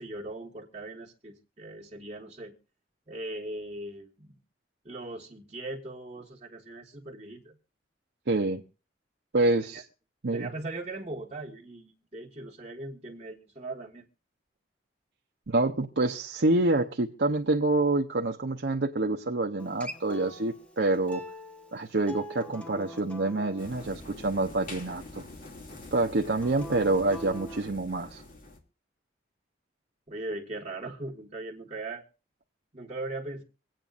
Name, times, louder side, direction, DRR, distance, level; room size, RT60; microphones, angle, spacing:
voice 1, 0.0-2.5 3.1-4.4 4.8-7.6 9.7-9.8 10.3-14.0 30.1-32.0 32.7-33.4, right 2 dB, 30° right, -6 dB, 1.6 m, -39 dB
voice 2, 8.3-8.6 9.3-9.8 10.2-10.5 15.5-21.2 21.7-25.3 25.9-28.2, right 2 dB, 70° right, 2 dB, 0.8 m, -27 dB
Acoustic guitar, 19.6-24.8 26.4-27.6, equal, 5° left, 1.1 m, -44 dB
sound 1, 23.6-28.6, left 2 dB, 50° left, 2.5 m, -45 dB
25.5 x 8.8 x 2.5 m, 0.35 s
head